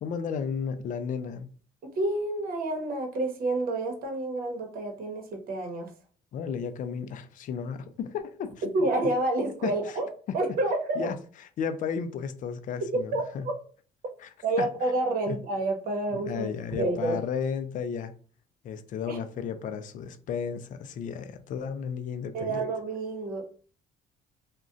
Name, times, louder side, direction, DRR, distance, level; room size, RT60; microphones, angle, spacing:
voice 1, 0.0-1.5 6.3-8.7 9.6-9.7 11.0-11.2 11.6-13.5 14.2-14.3 14.6-14.7 15.3-15.4 16.1-18.1 18.6-22.6, left 7 dB, 50° left, 0.4 m, -33 dB
voice 2, 1.8-5.9 8.7-11.1 12.9-13.5 14.4-16.5 16.8-17.2 19.1-19.2 22.3-23.4, right 2 dB, 60° right, 0.9 m, -29 dB
2.4 x 2.1 x 3.7 m
cardioid pair, 110°, 17 cm